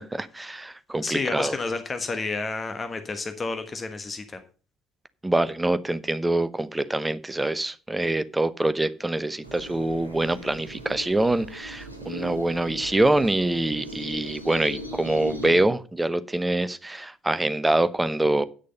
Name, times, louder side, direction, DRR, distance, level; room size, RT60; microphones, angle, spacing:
voice 1, 0.1-1.5 5.2-18.4, right 2 dB, 10° right, 0.9 m, -25 dB
voice 2, 1.0-4.4, left 3 dB, 30° left, 1.3 m, -30 dB
sound 1, 9.4-15.6, equal, 90° right, 1.1 m, -39 dB
10.0 x 6.7 x 5.3 m
figure-of-eight pair, 55°, 0 cm